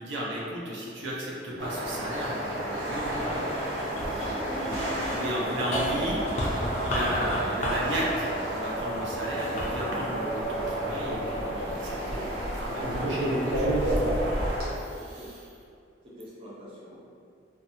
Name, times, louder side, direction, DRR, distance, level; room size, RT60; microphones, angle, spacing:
voice 1, 0.0-13.7 14.0-14.2 14.7-15.5, right 1 dB, 80° right, -4 dB, 0.5 m, -35 dB
sound 1, 1.6-14.7, right 1 dB, 55° right, 0.9 m, -31 dB
sound 2, 3.0-11.5 12.1-12.8, equal, 40° left, 0.3 m, -35 dB
Musical instrument, 4.0-12.8, right 2 dB, 5° left, 0.9 m, -38 dB
voice 2, 15.0-15.3 16.0-17.0, equal, 30° right, -7 dB, 0.5 m, -46 dB
2.7 x 2.3 x 2.6 m, 2.4 s
head